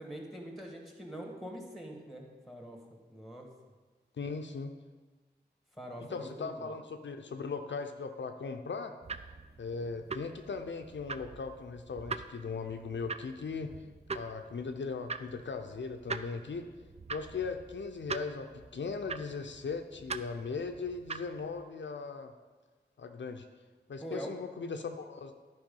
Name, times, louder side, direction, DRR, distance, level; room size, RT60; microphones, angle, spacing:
voice 1, 0.0-2.8 3.1-3.5 5.8-6.6 24.0-24.4, right 1 dB, ahead, 1 dB, 1.9 m, -43 dB
voice 2, 4.2-4.7 6.0-8.9 9.6-13.7 14.1-16.7 17.1-22.3 23.0-23.5 23.9-25.3, left 4 dB, 80° left, 6 dB, 0.5 m, -38 dB
sound 1, 9.0-21.6, right 4 dB, 35° right, 0.4 m, -43 dB
10.5 x 4.7 x 5.3 m, 1.3 s
wide cardioid pair, 50°, 19 cm